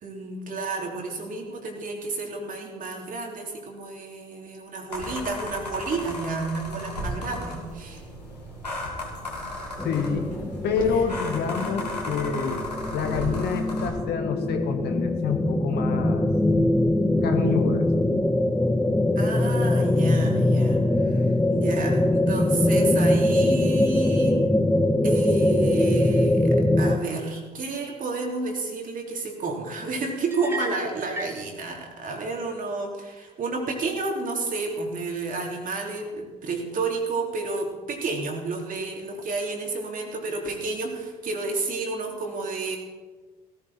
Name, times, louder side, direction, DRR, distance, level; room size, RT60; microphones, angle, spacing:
voice 1, 0.0-8.0 19.2-24.4 25.0-42.8, right 3 dB, 40° right, 1 dB, 3.5 m, -31 dB
sound 1, 4.9-13.9, left 1 dB, 90° left, 2.5 m, -35 dB
voice 2, 9.8-10.3 10.6-12.6 12.9-16.3 17.2-17.9, left 6 dB, 55° left, 5 dB, 1.9 m, -27 dB
sound 2, 9.8-27.0, left 1 dB, 5° left, 1.0 m, -22 dB
sound 3, 30.3-31.4, right 1 dB, 10° right, 2.3 m, -35 dB
18.0 x 14.0 x 4.4 m, 1.3 s
figure-of-eight pair, 50°, 20 cm